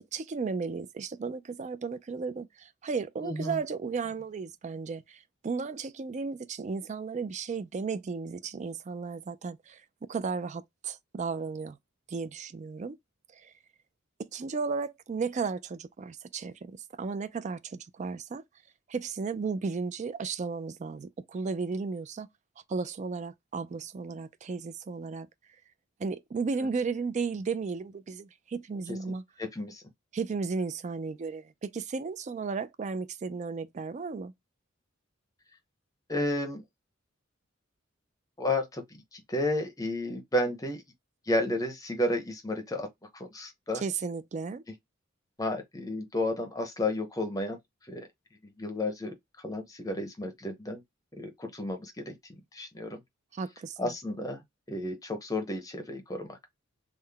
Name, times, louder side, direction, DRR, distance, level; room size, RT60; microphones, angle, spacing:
voice 1, 0.0-9.8 10.1-11.8 12.1-13.0 13.4-13.5 14.3-18.4 18.9-22.3 22.7-25.3 26.0-29.2 30.1-34.3 43.8-44.6 53.3-53.9, right 4 dB, 35° right, 0.3 m, -34 dB
voice 2, 3.2-3.6 28.9-29.0 29.4-29.8 36.1-36.6 38.4-38.8 39.1-40.8 41.3-42.9 43.1-43.8 45.4-47.6 47.9-48.1 48.4-49.1 49.4-50.8 51.2-52.1 52.5-53.0 53.8-54.4 54.7-56.4, left 1 dB, 15° left, 0.7 m, -32 dB
3.7 x 2.0 x 3.3 m
head